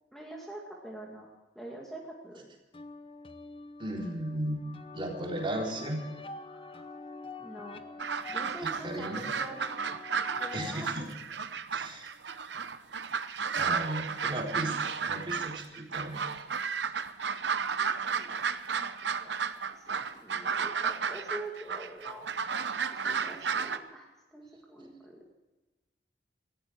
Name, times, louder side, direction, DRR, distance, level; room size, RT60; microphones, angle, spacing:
voice 1, 0.1-1.3 1.6-2.5 6.5-6.9 7.4-7.9 8.3-9.6 10.4-11.1 17.8-19.4 19.7-22.3 22.9-25.2, right 1 dB, ahead, -2 dB, 2.1 m, -45 dB
sound 1, 2.7-10.7, left 3 dB, 30° left, 0.9 m, -46 dB
voice 2, 3.8-4.7 4.9-6.1 8.6-9.3 10.5-11.1 11.7-12.1 13.5-14.8 15.1-16.2, right 1 dB, 30° right, 0 dB, 3.8 m, -35 dB
sound 2, 8.0-23.8, right 6 dB, 85° right, 0.9 m, -33 dB
19.0 x 15.0 x 4.6 m, 1.2 s
head